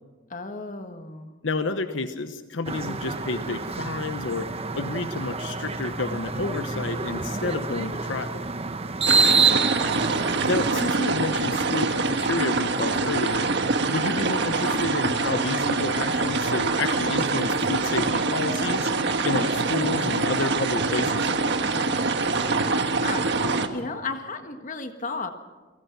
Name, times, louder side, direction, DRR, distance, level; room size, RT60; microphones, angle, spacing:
voice 1, 0.3-1.3 1.9-2.1 9.2-9.6 22.9-23.3 23.7-25.3, left 3 dB, 40° left, 7 dB, 1.6 m, -34 dB
voice 2, 1.4-4.5 4.7-8.4 10.5-13.5 13.9-21.3, left 3 dB, 75° left, 9 dB, 1.0 m, -30 dB
sound 1, 2.6-10.7, right 5 dB, 30° right, 1.0 m, -27 dB
sound 2, 9.1-23.7, right 3 dB, 60° right, 1.5 m, -25 dB
28.5 x 19.0 x 6.1 m, 1.3 s
head